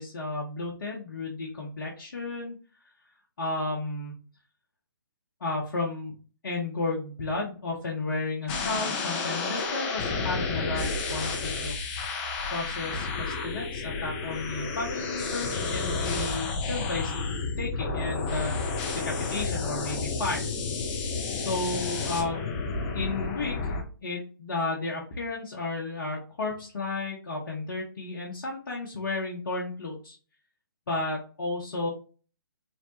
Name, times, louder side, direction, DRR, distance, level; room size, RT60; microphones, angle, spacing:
voice 1, 0.0-2.6 3.4-4.1 5.4-6.1 6.4-12.1 12.5-17.1 17.6-20.5 21.3-22.6 22.9-23.7 24.0-30.2 30.9-31.9, left 3 dB, 55° left, -3 dB, 0.9 m, -33 dB
sound 1, 8.5-23.8, left 4 dB, 25° left, 0.5 m, -31 dB
3.3 x 2.1 x 2.8 m, 0.37 s
figure-of-eight pair, 130°, 12 cm